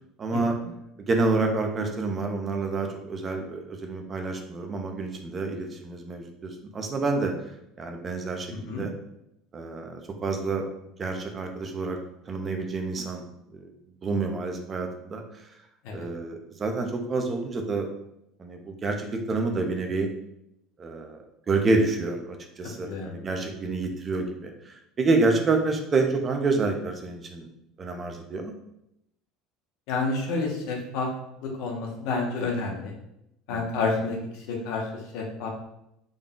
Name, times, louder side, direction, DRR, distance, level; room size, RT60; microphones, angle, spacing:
voice 1, 0.2-0.6 1.1-7.3 7.8-8.9 9.5-10.6 11.0-12.0 12.3-13.3 13.5-13.6 14.0-15.2 15.9-17.9 18.4-20.1 20.8-21.2 21.5-27.5 27.8-28.5 33.5-33.6, right 3 dB, 20° right, 4 dB, 0.4 m, -28 dB
voice 2, 8.5-8.8 15.8-16.1 22.8-23.2 29.9-31.1 31.4-32.9 33.5-35.5, left 3 dB, 65° left, 0 dB, 0.8 m, -29 dB
3.8 x 2.2 x 3.6 m, 0.81 s
cardioid pair, 170°, 0 cm